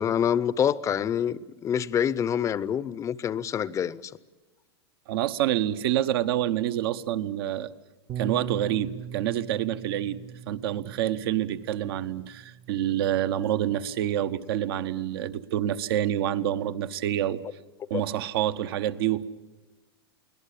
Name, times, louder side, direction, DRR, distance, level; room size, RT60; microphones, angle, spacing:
voice 1, 0.0-4.1 17.9-18.0, left 8 dB, 25° left, 18 dB, 0.6 m, -26 dB
voice 2, 5.1-7.7 8.2-10.2 10.5-17.4 17.9-19.2, right 11 dB, 65° right, 12 dB, 1.1 m, -27 dB
Bass guitar, 8.1-14.3, right 8 dB, 35° right, 0.7 m, -41 dB
23.0 x 18.0 x 8.5 m, 1.2 s
hypercardioid pair, 130°, 13 cm